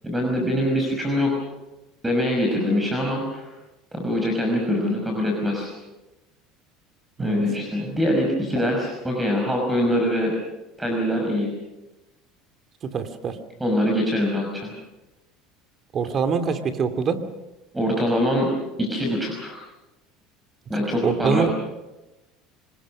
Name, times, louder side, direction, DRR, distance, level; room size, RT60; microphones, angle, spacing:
voice 1, 0.0-1.3 2.0-3.5 3.9-5.7 7.2-10.4 10.8-11.5 13.6-14.7 17.7-18.5 18.8-19.6 20.7-21.6, equal, 10° right, 1 dB, 5.7 m, -23 dB
voice 2, 12.9-13.4 15.9-17.2 21.0-21.5, right 6 dB, 40° right, 9 dB, 2.6 m, -24 dB
26.5 x 20.5 x 6.4 m, 1.0 s
supercardioid pair, 100°, 0 cm